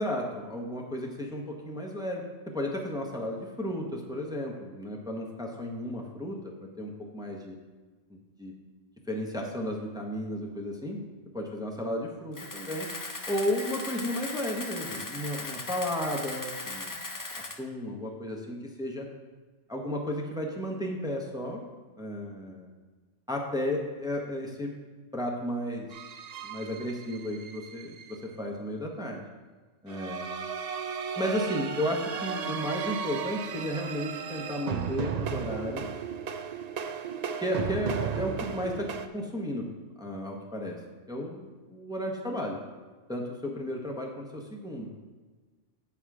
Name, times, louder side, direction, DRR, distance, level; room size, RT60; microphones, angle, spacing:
voice 1, 0.0-2.2 2.5-7.6 8.1-8.6 9.1-11.0 11.3-12.9 13.3-17.0 17.3-19.1 19.7-21.6 22.0-22.7 23.3-24.7 25.1-25.9 26.4-29.2 29.8-30.4 31.2-35.9 37.4-39.7 40.0-40.8 41.1-42.6 43.1-44.9, left 1 dB, 5° right, -1 dB, 0.9 m, -33 dB
Camera, 12.3-17.6, left 2 dB, 30° left, 0.3 m, -38 dB
sound 1, 25.9-28.2 29.9-39.1, right 7 dB, 80° right, 0.3 m, -35 dB
7.8 x 5.9 x 4.8 m, 1.4 s
omnidirectional pair, 1.3 m